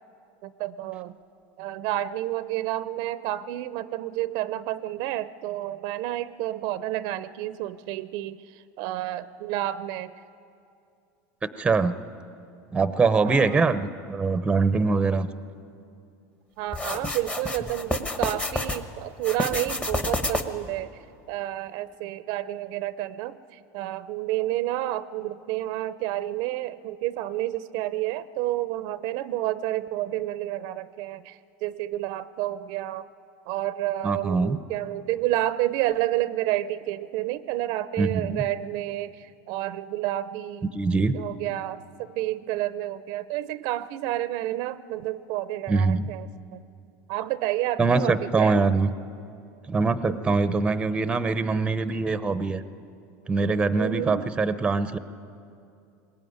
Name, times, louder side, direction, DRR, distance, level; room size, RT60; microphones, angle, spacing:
voice 1, 0.4-1.2 1.6-10.1 13.2-13.6 16.6-20.9 21.3-33.1 33.5-40.7 41.1-41.8 42.1-46.6 47.1-48.6 50.1-50.2 53.8-54.3, right 14 dB, 55° right, 15 dB, 0.7 m, -30 dB
voice 2, 11.6-11.9 12.7-15.3 34.0-34.6 38.0-38.4 40.7-41.2 45.7-46.0 47.8-48.9 49.7-52.6 53.3-55.0, right 4 dB, 10° right, 12 dB, 0.8 m, -23 dB
sound 1, 16.7-18.8 19.2-20.7, left 2 dB, 15° left, 1.2 m, -29 dB
21.5 x 19.0 x 9.5 m, 2.5 s
supercardioid pair, 140°, 8 cm